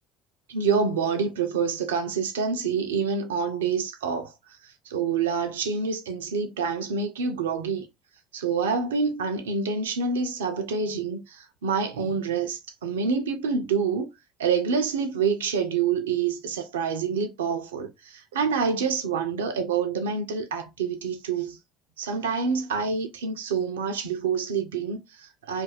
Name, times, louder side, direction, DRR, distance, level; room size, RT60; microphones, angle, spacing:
voice 1, 0.5-4.3 4.9-7.9 8.3-14.1 14.4-21.6 22.0-25.6, right 5 dB, 80° right, 0.4 m, -27 dB
2.4 x 2.1 x 3.1 m
hypercardioid pair, 65°, 0 cm